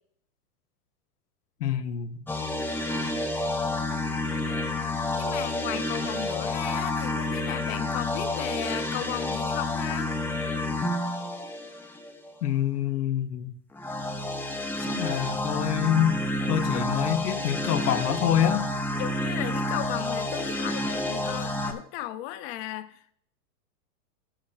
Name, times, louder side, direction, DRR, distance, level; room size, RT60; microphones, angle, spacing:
voice 1, 1.6-2.2 12.4-13.5 14.8-16.2 16.5-18.7, left 10 dB, 85° left, 0.9 m, -26 dB
sound 1, 2.3-12.3 13.7-21.7, left 1 dB, 5° left, 0.6 m, -29 dB
voice 2, 5.2-10.1 16.6-17.0 19.0-23.1, left 13 dB, 45° left, 0.9 m, -35 dB
15.0 x 6.4 x 2.4 m
hypercardioid pair, 130°, 45 cm